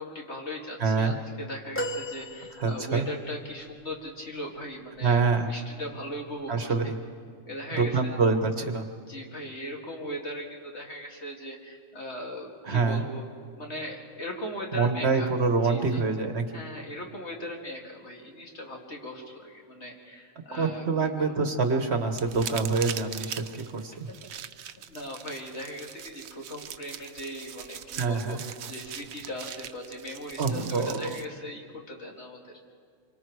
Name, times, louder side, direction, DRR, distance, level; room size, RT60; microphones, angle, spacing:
voice 1, 0.0-6.7 7.5-8.2 9.1-13.3 13.5-15.3 15.6-16.0 16.5-21.3 24.1-24.2 24.9-32.5, equal, 55° left, 0 dB, 2.7 m, -39 dB
voice 2, 0.8-1.2 2.6-3.1 5.0-5.5 6.5-6.9 7.8-8.9 12.6-13.0 14.7-16.4 20.5-24.1 27.9-28.4 30.4-31.2, right 4 dB, 55° right, 7 dB, 1.3 m, -26 dB
sound 1, 1.7-3.2 3.9-4.0, equal, 10° left, 1.3 m, -35 dB
sound 2, 22.1-31.2, right 9 dB, 85° right, 1.2 m, -41 dB
26.5 x 24.5 x 4.7 m, 2.2 s
omnidirectional pair, 1.4 m